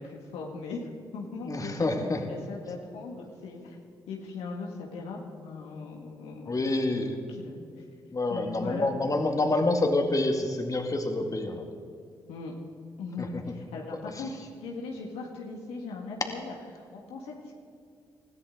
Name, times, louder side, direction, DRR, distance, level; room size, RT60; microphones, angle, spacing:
voice 1, 0.0-3.8 4.1-7.8 8.3-8.9 12.3-12.5 13.0-17.5, left 3 dB, 80° left, 0 dB, 1.9 m, -39 dB
voice 2, 1.5-2.2 6.5-7.1 8.1-11.6, left 2 dB, 35° left, 4 dB, 2.3 m, -27 dB
21.5 x 14.5 x 3.9 m, 2.4 s
hypercardioid pair, 45°, 10 cm